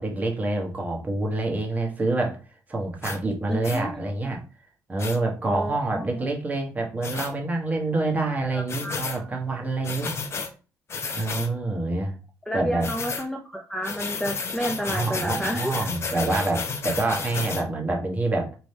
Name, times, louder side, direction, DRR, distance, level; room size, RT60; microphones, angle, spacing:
voice 1, 0.0-2.4 2.7-4.4 4.9-10.1 11.1-12.2 12.5-12.9 14.7-18.6, right 2 dB, 25° right, 0 dB, 1.3 m, -27 dB
sound 1, 3.0-3.2 3.6-3.8 5.0-5.2 7.0-7.3 8.7-9.2 9.8-10.5 10.9-11.5 12.8-13.3 13.8-17.6, left 5 dB, 45° left, 0.7 m, -32 dB
voice 2, 3.5-4.1 5.5-6.3 8.5-9.0 12.5-15.9, equal, 5° left, 3 dB, 0.5 m, -31 dB
3.3 x 3.0 x 4.2 m, 0.35 s
cardioid pair, 100°, 6 cm